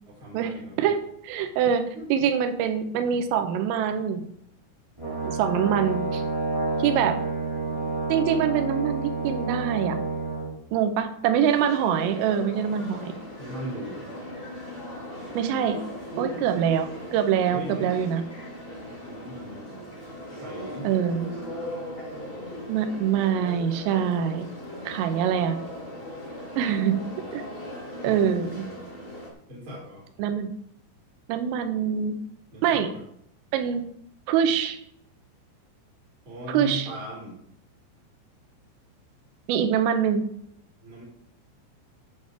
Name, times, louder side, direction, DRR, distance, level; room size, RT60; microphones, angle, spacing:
voice 1, 0.1-0.8 1.9-2.1 7.6-7.9 13.4-14.1 16.1-16.4 17.5-17.9 19.0-19.9 20.3-20.9 21.4-22.4 28.0-28.9 29.5-30.0 32.5-33.0 36.2-37.4 40.8-41.0, right 1 dB, 25° right, -4 dB, 4.4 m, -39 dB
voice 2, 0.8-1.8 2.1-4.2 5.3-6.2 6.8-7.2 8.1-10.0 10.7-13.1 15.4-15.8 16.2-18.2 20.9-21.3 22.7-24.5 24.9-25.6 26.6-27.0 27.3-27.4 28.0-28.6 30.2-30.5 31.3-32.1 32.6-32.9 33.5-33.8 34.3-34.8 36.5-36.9 39.5-40.2, right 8 dB, 85° right, 8 dB, 3.5 m, -24 dB
Brass instrument, 5.0-10.5, right 3 dB, 10° right, 2.2 m, -29 dB
sound 1, 11.4-29.3, left 1 dB, 45° left, 0.7 m, -39 dB
8.5 x 6.5 x 6.7 m, 0.70 s
omnidirectional pair, 5.7 m